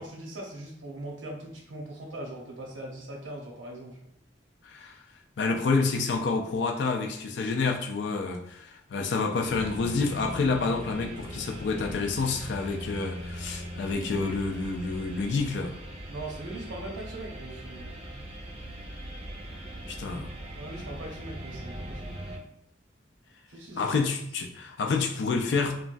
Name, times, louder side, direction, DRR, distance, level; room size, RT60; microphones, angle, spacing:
voice 1, 0.0-4.1 16.1-18.2 20.0-22.1 23.5-24.1, right 1 dB, 90° right, -1 dB, 0.8 m, -41 dB
voice 2, 4.6-5.0 5.4-15.7 19.9-20.3 23.8-25.7, left 4 dB, 65° left, 4 dB, 0.4 m, -28 dB
sound 1, 9.5-22.4, equal, 35° right, 0.4 m, -40 dB
3.0 x 2.3 x 2.5 m, 0.71 s
head